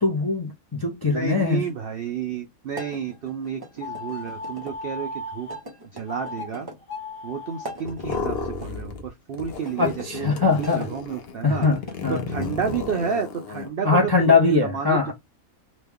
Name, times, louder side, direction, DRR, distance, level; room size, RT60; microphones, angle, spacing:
voice 1, 0.0-1.6 9.8-10.9 11.4-12.3 13.8-15.1, left 4 dB, 30° left, 0.4 m, -21 dB
voice 2, 1.1-5.5 5.9-6.7 7.2-11.7 12.1-15.1, right 6 dB, 70° right, 0.5 m, -31 dB
sound 1, 2.7-4.8 5.5-6.8 7.5-8.7 9.6-10.9 11.5-12.9, right 1 dB, 20° right, 0.7 m, -42 dB
sound 2, 3.8-5.6 6.1-6.5 6.8-7.7, left 2 dB, 75° left, 1.4 m, -35 dB
sound 3, 7.8-9.1 9.3-13.7, left 5 dB, 55° left, 0.8 m, -33 dB
3.0 x 2.2 x 3.4 m
omnidirectional pair, 1.5 m